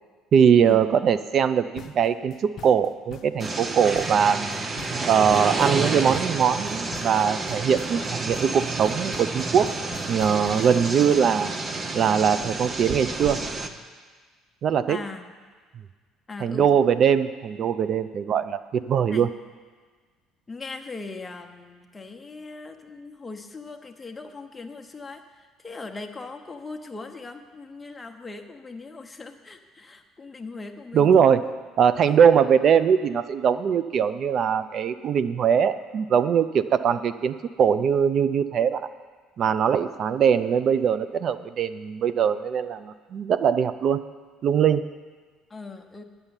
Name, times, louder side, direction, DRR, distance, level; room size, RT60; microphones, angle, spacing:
voice 1, 0.3-4.6 5.1-9.7 10.1-11.5 11.9-13.4 14.6-15.0 16.4-19.3 30.9-31.4 31.8-38.8 39.4-44.0 44.4-44.9, right 7 dB, 50° right, 12 dB, 0.4 m, -21 dB
sound 1, 1.7-11.3, left 7 dB, 50° left, 0.7 m, -45 dB
sound 2, 3.4-13.7, right 3 dB, 25° right, 0.8 m, -30 dB
voice 2, 14.9-15.2 16.3-16.7 19.1-19.3 20.5-31.5 32.0-32.2 45.5-46.0, left 3 dB, 20° left, 4 dB, 0.9 m, -39 dB
9.7 x 6.9 x 8.9 m, 1.5 s
cardioid pair, 105°, 0 cm